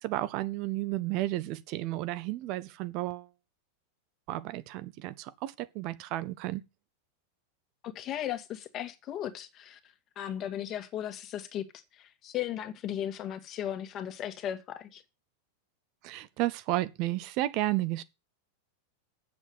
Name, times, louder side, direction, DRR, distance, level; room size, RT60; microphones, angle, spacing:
voice 1, 0.0-3.3 4.3-6.6 16.0-18.0, right 16 dB, 45° right, 0.7 m, -32 dB
voice 2, 7.8-9.8 10.1-11.6 11.9-15.0, left 11 dB, 35° left, 1.7 m, -36 dB
8.1 x 7.0 x 7.8 m
figure-of-eight pair, 90°, 0 cm